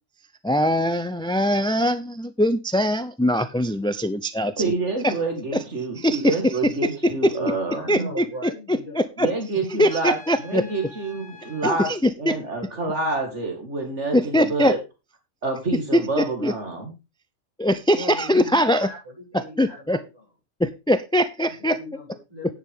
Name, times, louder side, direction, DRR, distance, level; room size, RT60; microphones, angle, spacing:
voice 1, 0.4-4.5 5.0-5.1 5.5-5.6 6.0-7.3 7.9-8.2 8.7-9.3 9.8-10.6 11.6-12.4 14.1-14.7 15.9-16.5 17.6-18.9 19.3-20.0 20.6-21.8, equal, 5° left, 12 dB, 0.4 m, -22 dB
voice 2, 4.6-8.1 9.2-10.2 10.4-11.9 12.2-14.8 15.4-16.9, right 3 dB, 70° right, 4 dB, 2.6 m, -27 dB
voice 3, 7.3-9.1 17.9-20.2 21.4-22.5, equal, 20° right, -3 dB, 8.0 m, -38 dB
Trumpet, 9.8-11.8, left 3 dB, 35° left, 6.0 m, -46 dB
10.5 x 9.7 x 3.6 m, 0.27 s
omnidirectional pair, 1.3 m